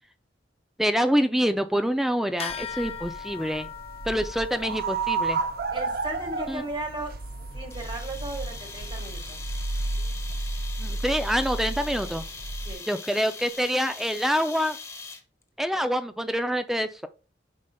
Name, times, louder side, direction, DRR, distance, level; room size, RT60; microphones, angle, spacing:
voice 1, 0.8-3.7 4.1-5.4 6.5-6.6 10.8-12.2 12.9-14.8 15.6-17.1, equal, ahead, 9 dB, 0.4 m, -26 dB
sound 1, 2.4-12.2, left 8 dB, 35° left, 0.7 m, -43 dB
sound 2, 2.5-12.7, right 3 dB, 55° right, 0.6 m, -32 dB
voice 2, 5.7-7.1 7.5-9.4 12.6-12.8 15.7-15.8, right 1 dB, 25° right, 3 dB, 1.7 m, -36 dB
sound 3, 7.7-15.4, left 4 dB, 15° left, 1.2 m, -41 dB
8.4 x 5.4 x 2.2 m, 0.34 s
head